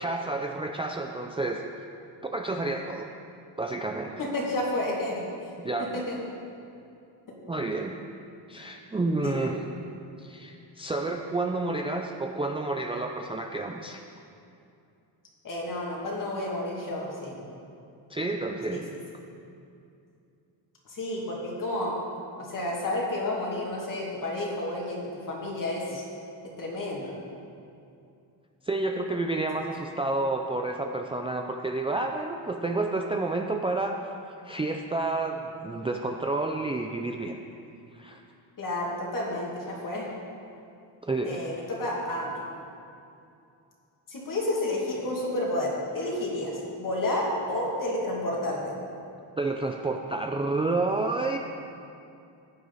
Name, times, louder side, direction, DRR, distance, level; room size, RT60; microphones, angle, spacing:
voice 1, 0.0-1.6 2.3-3.1 3.6-4.2 5.6-6.1 7.5-7.9 8.5-9.5 10.2-14.0 18.1-18.9 28.6-34.0 34.4-37.3 37.9-38.2 41.0-41.5 49.4-51.4, right 2 dB, 15° right, 2 dB, 0.4 m, -30 dB
voice 2, 4.2-5.2 5.8-6.2 7.3-7.4 9.2-9.5 15.4-17.4 18.7-18.8 20.9-22.0 22.4-26.0 26.6-27.1 38.6-40.1 41.2-42.4 44.1-48.7, left 1 dB, 45° left, -3 dB, 2.5 m, -31 dB
15.0 x 9.4 x 4.1 m, 2.6 s
cardioid pair, 155°, 46 cm